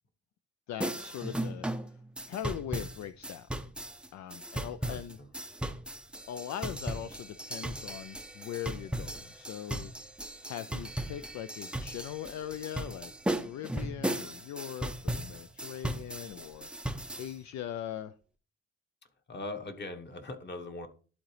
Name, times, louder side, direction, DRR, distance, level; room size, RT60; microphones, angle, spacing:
voice 1, 0.7-2.0 2.3-3.5 4.1-5.2 6.3-9.9 10.4-13.1 13.4-16.7 17.2-18.1, left 11 dB, 65° left, 0.4 m, -40 dB
sound 1, 0.8-17.3, right 1 dB, 5° right, 0.5 m, -37 dB
voice 2, 4.8-5.3 19.3-20.9, left 2 dB, 35° left, 1.2 m, -41 dB
11.5 x 3.9 x 3.2 m
cardioid pair, 90°, 30 cm